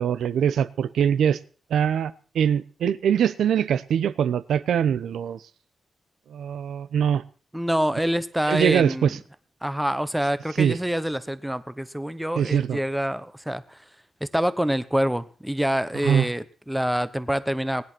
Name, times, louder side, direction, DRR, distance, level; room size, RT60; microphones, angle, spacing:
voice 1, 0.0-1.4 1.7-5.4 6.3-7.2 8.4-9.2 10.6-10.8 12.4-12.8 16.0-16.3, right 8 dB, 85° right, 0.9 m, -23 dB
voice 2, 7.5-9.1 9.6-13.8 14.2-17.8, equal, 5° right, 0.9 m, -26 dB
19.5 x 11.0 x 6.1 m
wide cardioid pair, 165°, 0 cm